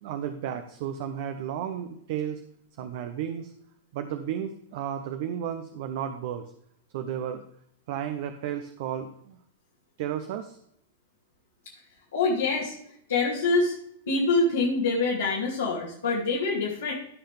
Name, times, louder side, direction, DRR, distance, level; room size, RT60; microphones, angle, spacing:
voice 1, 0.0-2.4 2.8-3.5 3.9-6.5 6.9-7.4 7.9-9.4 10.0-10.6, right 9 dB, 55° right, 7 dB, 0.9 m, -33 dB
voice 2, 12.1-12.7 13.1-13.8 14.1-16.9, left 3 dB, 75° left, -6 dB, 2.7 m, -25 dB
15.5 x 5.7 x 3.5 m, 0.70 s
figure-of-eight pair, 100°, 0 cm